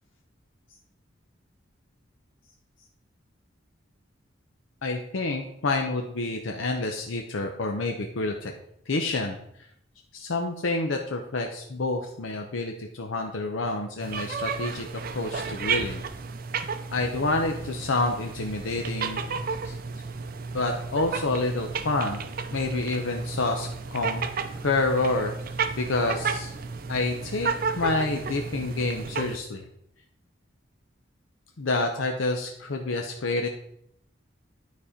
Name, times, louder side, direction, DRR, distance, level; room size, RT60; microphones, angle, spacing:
voice 1, 4.8-8.5 8.9-9.4 10.1-14.9 15.1-16.0 16.9-19.7 20.5-24.3 24.6-25.3 25.8-26.5 26.9-27.5 27.8-29.6 31.6-33.5, left 2 dB, 90° left, 3 dB, 0.7 m, -28 dB
sound 1, 14.0-29.4, right 5 dB, 50° right, 0.5 m, -33 dB
9.5 x 4.3 x 5.0 m, 0.73 s
head